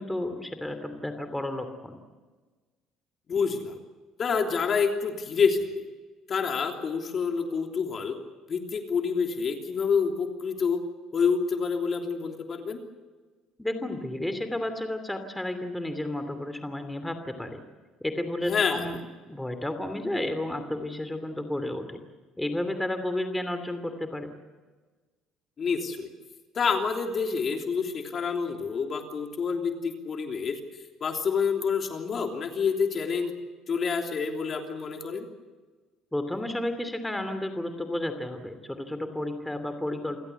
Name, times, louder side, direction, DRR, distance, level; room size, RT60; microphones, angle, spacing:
voice 1, 0.0-1.9 13.6-17.6 18.0-19.0 19.3-22.0 22.4-24.3 36.1-40.2, left 1 dB, 5° left, 8 dB, 2.8 m, -32 dB
voice 2, 3.3-3.8 4.2-5.9 6.3-8.2 8.5-10.8 11.1-12.8 18.5-18.9 25.6-26.1 26.5-30.6 31.0-33.3 33.7-35.2, left 5 dB, 45° left, 3 dB, 3.2 m, -27 dB
28.0 x 16.5 x 8.2 m, 1.3 s
supercardioid pair, 85°, 0 cm